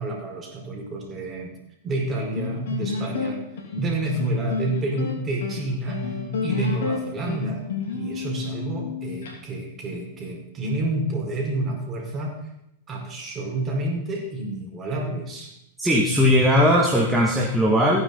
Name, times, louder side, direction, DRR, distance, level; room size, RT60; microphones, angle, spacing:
voice 1, 0.0-1.5 1.8-3.4 3.8-6.2 6.4-7.6 7.9-12.4 12.9-15.5, right 2 dB, 25° right, 0 dB, 4.9 m, -29 dB
sound 1, 2.4-9.3, left 5 dB, 70° left, 3.5 m, -30 dB
voice 2, 15.8-18.0, equal, 5° right, -4 dB, 2.3 m, -19 dB
16.5 x 9.9 x 4.1 m, 0.79 s
hypercardioid pair, 105°, 0 cm